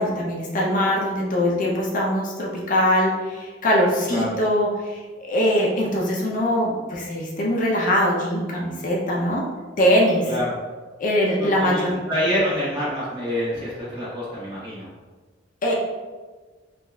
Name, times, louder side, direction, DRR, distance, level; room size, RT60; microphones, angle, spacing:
voice 1, 0.0-9.4 9.8-10.3 11.0-12.0 15.6-15.7, equal, 45° left, -2 dB, 0.5 m, -22 dB
voice 2, 11.4-14.9, equal, 30° right, -8 dB, 1.4 m, -26 dB
3.8 x 3.1 x 2.3 m, 1.4 s
head